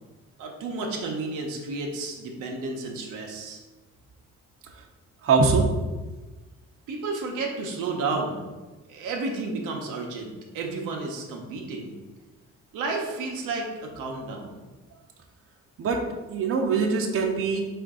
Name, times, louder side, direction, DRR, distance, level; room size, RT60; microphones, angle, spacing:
voice 1, 0.4-3.6 6.9-8.5 8.9-12.0 12.7-14.6, right 3 dB, 90° right, 1 dB, 0.7 m, -32 dB
voice 2, 5.2-5.7 15.8-16.0 16.3-17.6, right 4 dB, 45° right, 2 dB, 0.6 m, -22 dB
3.7 x 2.5 x 3.6 m, 1.2 s
cardioid pair, 90°, 30 cm